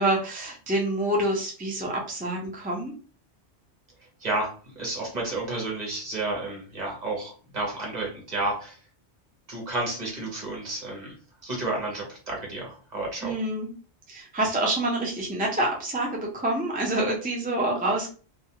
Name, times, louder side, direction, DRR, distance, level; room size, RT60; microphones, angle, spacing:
voice 1, 0.0-2.9 13.2-13.7 14.1-18.1, right 1 dB, 15° right, -1 dB, 0.3 m, -27 dB
voice 2, 4.2-8.8 9.5-11.1 11.4-13.4, right 2 dB, 40° right, -2 dB, 1.0 m, -31 dB
2.4 x 2.3 x 2.7 m, 0.39 s
omnidirectional pair, 1.1 m